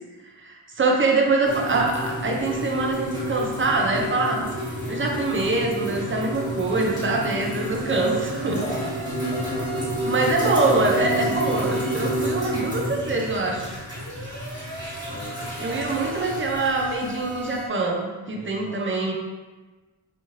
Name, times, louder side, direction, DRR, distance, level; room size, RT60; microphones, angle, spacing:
voice 1, 0.4-4.4 4.9-8.6 10.1-13.8 15.6-19.1, right 3 dB, 25° right, 0 dB, 0.4 m, -24 dB
sound 1, 1.4-17.6, equal, 10° right, 1.2 m, -30 dB
sound 2, 7.9-12.2 13.9-17.7, right 2 dB, 70° right, 0.7 m, -39 dB
voice 2, 8.5-8.9 9.2-10.1 15.1-15.9 18.3-18.8, equal, 25° left, -4 dB, 0.7 m, -37 dB
2.5 x 2.4 x 3.0 m, 1.2 s
wide cardioid pair, 75°, 50 cm